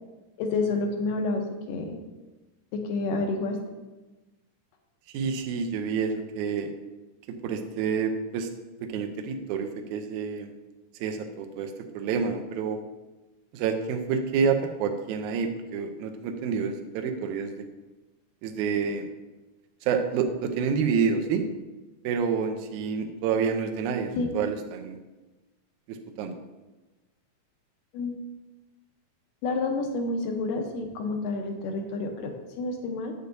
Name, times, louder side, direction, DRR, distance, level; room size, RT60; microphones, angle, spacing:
voice 1, 0.4-2.0 2.7-3.8 24.2-24.3 27.9-28.1 29.4-33.1, left 3 dB, 85° left, 4 dB, 2.5 m, -29 dB
voice 2, 5.1-6.7 7.3-8.5 8.8-10.5 10.9-12.8 13.5-17.7 18.4-19.1 19.8-21.5 22.0-25.0 25.9-26.4, right 6 dB, 80° right, 5 dB, 2.0 m, -28 dB
8.2 x 7.9 x 2.6 m, 1.1 s
omnidirectional pair, 3.8 m